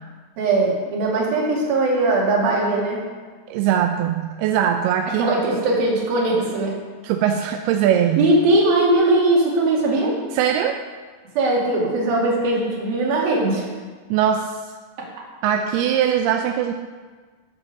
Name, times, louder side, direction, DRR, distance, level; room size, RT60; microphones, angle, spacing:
voice 1, 0.4-3.0 5.2-6.8 8.2-10.2 11.4-13.7 15.0-15.1, right 2 dB, 60° right, -3 dB, 4.2 m, -20 dB
voice 2, 3.5-5.3 7.0-8.3 10.4-10.8 14.1-14.5 15.4-16.7, right 9 dB, 80° right, 5 dB, 2.5 m, -20 dB
15.0 x 7.5 x 6.7 m, 1.5 s
omnidirectional pair, 4.9 m